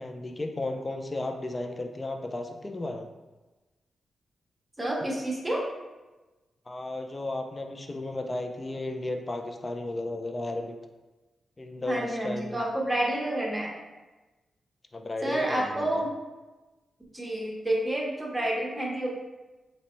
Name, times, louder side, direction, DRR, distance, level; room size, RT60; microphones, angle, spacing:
voice 1, 0.0-3.1 6.7-10.7 11.6-12.6 14.9-16.1, left 2 dB, 25° left, 3 dB, 0.3 m, -34 dB
voice 2, 4.8-5.6 11.9-13.7 15.2-16.1 17.1-19.1, right 1 dB, 10° right, -3 dB, 0.8 m, -29 dB
3.9 x 2.1 x 4.2 m, 1.1 s
wide cardioid pair, 135°, 0 cm